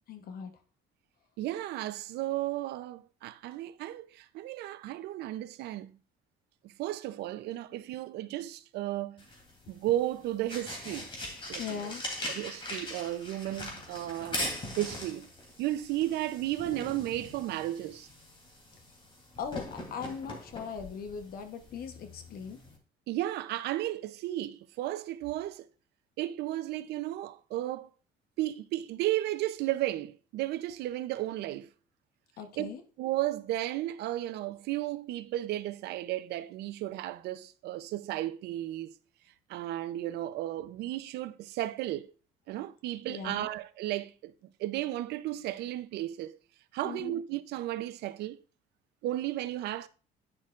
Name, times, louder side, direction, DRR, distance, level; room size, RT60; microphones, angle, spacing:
voice 1, 0.1-0.5 11.6-12.0 19.4-22.6 32.4-32.8 43.1-43.5 46.8-47.2, left 6 dB, 60° left, 1.0 m, -39 dB
voice 2, 1.4-5.9 6.6-9.2 9.7-11.1 11.5-11.9 12.3-14.4 14.8-15.3 15.6-18.1 23.1-25.7 26.2-27.9 28.4-31.7 32.6-32.7 33.0-38.9 39.5-42.1 42.5-44.3 44.6-46.4 46.7-48.4 49.0-49.9, right 14 dB, 80° right, 0.6 m, -34 dB
sound 1, 9.2-22.8, left 1 dB, 30° left, 3.1 m, -41 dB
9.8 x 6.6 x 2.5 m
cardioid pair, 110°, 17 cm